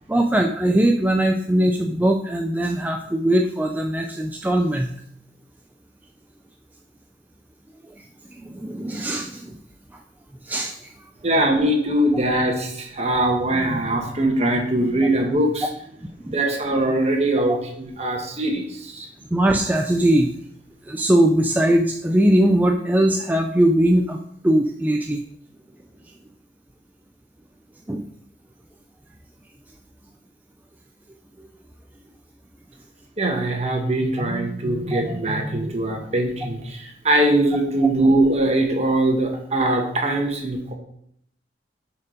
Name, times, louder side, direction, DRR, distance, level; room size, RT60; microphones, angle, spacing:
voice 1, 0.1-4.9 8.0-8.1 8.3-9.6 10.4-10.9 16.3-16.4 19.3-20.4 20.9-24.2 24.4-25.2 27.9-28.0 34.9-35.0, right 1 dB, 10° right, 3 dB, 0.4 m, -20 dB
voice 2, 11.2-15.7 16.2-19.1 33.2-40.7, right 1 dB, 40° right, 2 dB, 1.3 m, -21 dB
7.1 x 4.6 x 5.1 m, 0.70 s
head